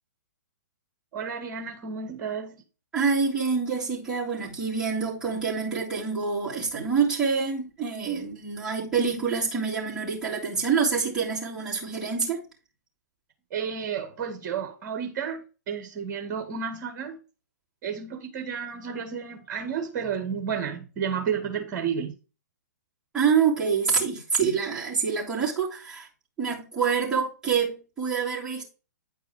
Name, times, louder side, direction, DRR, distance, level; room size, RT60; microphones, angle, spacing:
voice 1, 1.1-2.6 13.5-17.2 17.8-22.1, right 7 dB, 35° right, 1.7 m, -32 dB
voice 2, 2.9-12.4 23.1-26.1 26.4-28.6, right 5 dB, 5° right, 3.5 m, -26 dB
9.4 x 4.7 x 4.8 m
hypercardioid pair, 125°, 10 cm